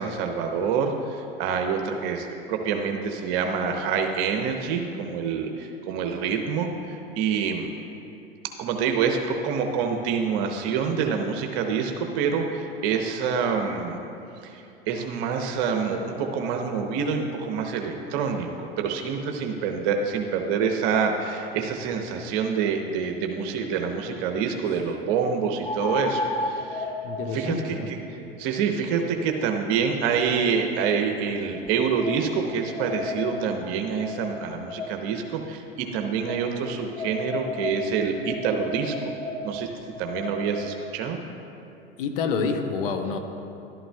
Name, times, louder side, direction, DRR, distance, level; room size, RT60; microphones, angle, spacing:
voice 1, 0.0-7.7 8.6-14.0 14.4-26.9 27.3-38.9 39.4-39.7 40.0-41.2, right 6 dB, 50° right, 4 dB, 0.8 m, -27 dB
sound 1, 23.0-23.1 25.6-30.8 31.5-35.2 36.2-40.8, left 2 dB, 10° left, 0.4 m, -35 dB
voice 2, 27.0-27.9 42.0-43.2, left 5 dB, 65° left, 6 dB, 0.9 m, -28 dB
11.5 x 11.0 x 2.3 m, 2.8 s
hypercardioid pair, 90°, 30 cm